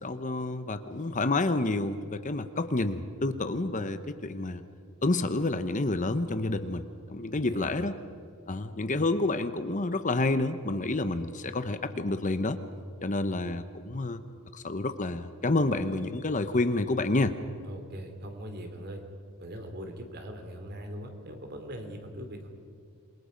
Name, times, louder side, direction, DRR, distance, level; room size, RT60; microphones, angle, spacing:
voice 1, 0.0-4.6 5.0-7.9 8.5-12.6 13.0-14.2 14.5-17.3, left 2 dB, 35° left, 10 dB, 0.9 m, -29 dB
voice 2, 7.3-7.8 17.6-19.0 19.4-22.5, equal, 50° right, 5 dB, 3.0 m, -41 dB
28.0 x 22.5 x 5.2 m, 2.2 s
head